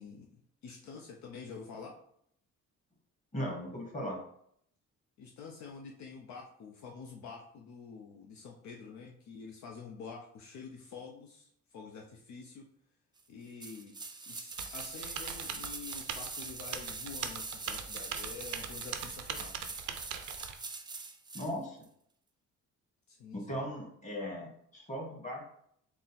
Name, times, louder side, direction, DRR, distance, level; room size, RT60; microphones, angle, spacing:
voice 1, 0.0-1.9 5.2-12.7 13.3-14.0 14.3-19.8 23.1-23.7, left 5 dB, 70° left, 1 dB, 0.6 m, -48 dB
voice 2, 3.3-4.2 21.3-21.8 23.3-25.5, equal, 25° left, -1 dB, 1.5 m, -38 dB
sound 1, 13.6-21.5 21.8-21.9, right 4 dB, 15° right, 0.4 m, -43 dB
Typing, 14.6-20.6, right 8 dB, 70° right, 0.5 m, -41 dB
3.9 x 2.0 x 4.1 m, 0.68 s
cardioid pair, 90°, 30 cm